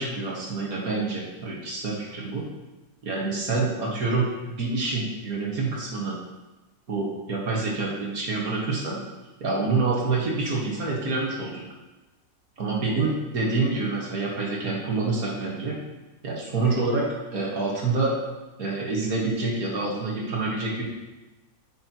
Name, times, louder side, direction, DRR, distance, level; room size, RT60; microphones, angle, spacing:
voice 1, 0.0-2.4 3.0-4.3 4.6-6.2 6.9-9.0 9.4-11.6 12.6-15.8 16.2-17.0 17.3-18.1 18.6-20.8, right 3 dB, 55° right, -3 dB, 2.0 m, -27 dB
9.5 x 6.5 x 3.0 m, 1.1 s
omnidirectional pair, 1.9 m